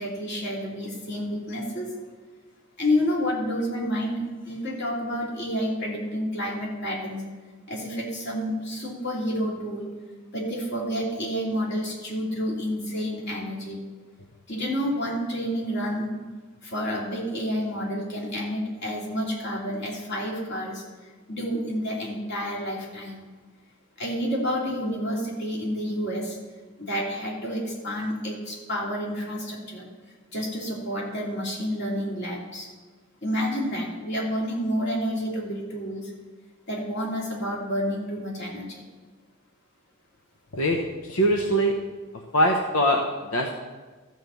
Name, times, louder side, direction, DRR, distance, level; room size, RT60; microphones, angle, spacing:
voice 1, 0.0-1.9 2.8-7.2 7.7-9.9 10.3-13.8 14.5-16.1 16.6-23.3 24.0-26.4 26.8-29.9 30.3-32.7 33.2-36.1 36.7-38.8, equal, 55° left, -3 dB, 2.8 m, -29 dB
voice 2, 40.5-41.7 42.3-43.5, equal, 90° left, 2 dB, 0.9 m, -23 dB
13.5 x 4.7 x 6.9 m, 1.4 s
head